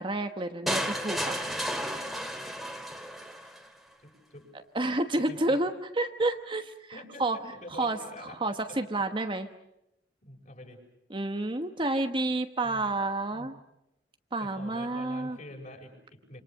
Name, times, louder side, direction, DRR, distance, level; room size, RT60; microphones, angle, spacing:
voice 1, 0.0-1.3 4.7-6.7 7.2-7.4 7.8-8.0 8.4-9.5 11.1-13.5 14.3-15.4, right 2 dB, 30° right, 7 dB, 1.2 m, -29 dB
sound 1, 0.7-3.7, equal, ahead, 2.3 m, -33 dB
voice 2, 3.2-3.5 4.0-4.5 4.8-5.6 6.9-9.4 10.2-10.8 12.6-12.8 13.3-13.5 14.4-16.4, left 1 dB, 45° left, 1 dB, 6.8 m, -47 dB
27.5 x 26.5 x 6.6 m, 0.83 s
head